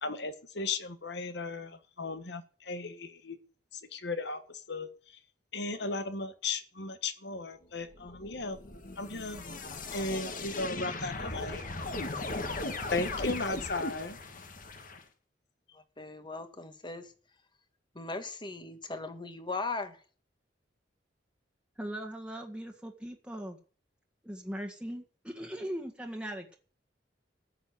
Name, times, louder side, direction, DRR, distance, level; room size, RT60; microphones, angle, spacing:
voice 1, 0.0-3.4 3.7-5.2 5.5-8.6 9.0-9.4 9.9-11.6 12.9-14.2, left 3 dB, 65° left, 1.6 m, -36 dB
sound 1, 7.9-15.0, left 2 dB, 50° left, 1.9 m, -38 dB
voice 2, 15.7-17.1 17.9-20.0, left 3 dB, 25° left, 1.7 m, -38 dB
voice 3, 21.8-23.6 24.2-26.6, equal, 5° right, 1.7 m, -39 dB
14.0 x 7.0 x 9.3 m
head